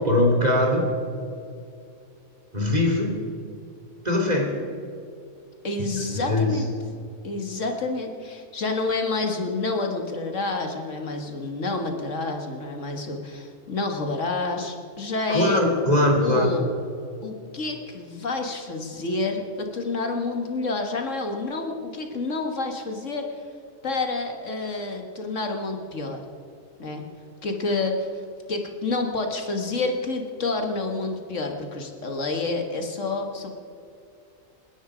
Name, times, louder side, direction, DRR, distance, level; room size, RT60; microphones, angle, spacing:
voice 1, 0.0-0.9 2.5-3.1 4.0-4.6 6.0-6.6 15.3-16.6, left 1 dB, 30° right, 0 dB, 3.1 m, -21 dB
voice 2, 5.6-6.7 7.2-15.6 16.2-16.7 17.2-23.4 23.8-26.2 26.8-27.0 27.4-28.1 28.5-33.5, left 3 dB, 65° left, 4 dB, 1.9 m, -28 dB
28.0 x 10.0 x 5.0 m, 2.5 s
omnidirectional pair, 1.4 m